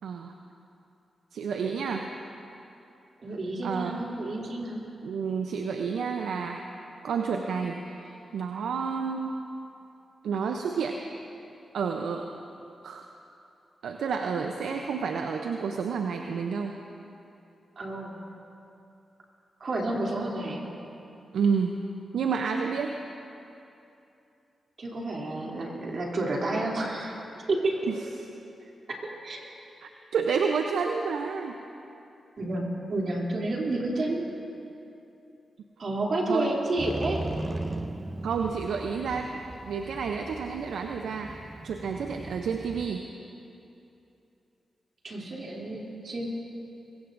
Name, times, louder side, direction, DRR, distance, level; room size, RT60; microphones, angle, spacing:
voice 1, 0.0-0.3 1.3-2.1 3.6-4.0 5.0-6.6 7.0-9.4 10.2-11.0 11.7-12.3 12.8-13.0 13.8-16.8 21.3-21.8 22.1-23.0 27.9-28.0 29.8-31.5 36.3-36.5 38.2-41.4 41.6-43.0, right 5 dB, 80° right, 4 dB, 0.6 m, -30 dB
voice 2, 3.2-4.8 17.8-18.1 19.6-20.6 24.8-27.2 27.5-27.9 28.9-29.4 32.4-34.2 35.8-37.2 45.0-46.3, right 2 dB, 65° right, -2 dB, 2.9 m, -30 dB
Motorcycle, 36.8-42.9, right 2 dB, 30° right, 0.7 m, -38 dB
22.0 x 17.5 x 2.6 m, 2.8 s
supercardioid pair, 45°, 0 cm